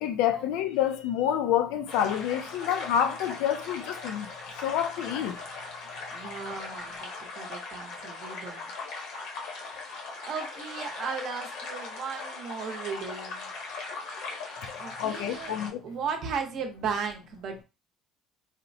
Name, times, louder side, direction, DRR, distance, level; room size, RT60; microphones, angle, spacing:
voice 1, 0.0-5.4 15.0-15.8, left 10 dB, 85° left, 0.4 m, -28 dB
sound 1, 1.9-15.7, left 3 dB, 70° left, 0.9 m, -39 dB
voice 2, 6.1-8.7 10.3-13.5 14.8-15.6 15.8-17.6, right 6 dB, 45° right, 0.7 m, -36 dB
4.1 x 2.0 x 2.6 m
cardioid pair, 170°, 0 cm